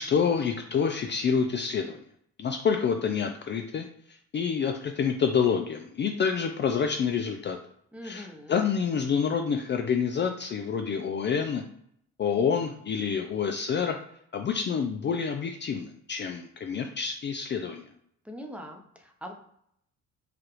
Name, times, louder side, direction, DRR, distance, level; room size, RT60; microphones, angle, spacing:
voice 1, 0.0-2.0 2.4-7.6 8.0-11.6 12.2-14.0 14.3-17.8, left 6 dB, 40° left, 4 dB, 0.4 m, -28 dB
voice 2, 7.9-8.6 18.2-19.3, equal, 5° right, 2 dB, 0.8 m, -42 dB
4.9 x 2.4 x 3.0 m, 0.70 s
cardioid pair, 90°, 30 cm